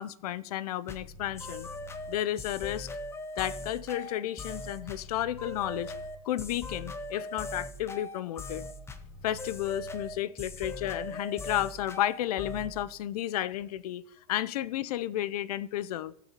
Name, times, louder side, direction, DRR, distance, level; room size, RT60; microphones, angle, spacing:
voice 1, 0.0-1.7 2.1-2.9 3.4-5.9 6.2-8.6 9.2-14.0 14.3-16.1, left 12 dB, 75° left, 0.5 m, -32 dB
sound 1, 0.9-12.8, left 2 dB, 15° left, 0.7 m, -40 dB
16.5 x 6.0 x 2.9 m
hypercardioid pair, 120°, 20 cm